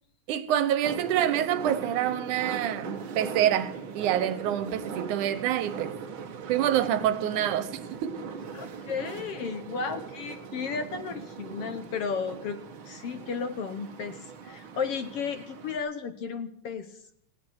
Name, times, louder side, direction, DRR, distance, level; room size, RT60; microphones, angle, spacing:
voice 1, 0.3-6.0 6.5-8.1, right 11 dB, 80° right, 2.5 m, -27 dB
sound 1, 0.8-15.8, right 5 dB, 50° right, 1.8 m, -40 dB
voice 2, 8.5-12.6 12.8-17.0, left 6 dB, 65° left, 1.7 m, -34 dB
19.0 x 16.0 x 4.6 m
omnidirectional pair, 3.5 m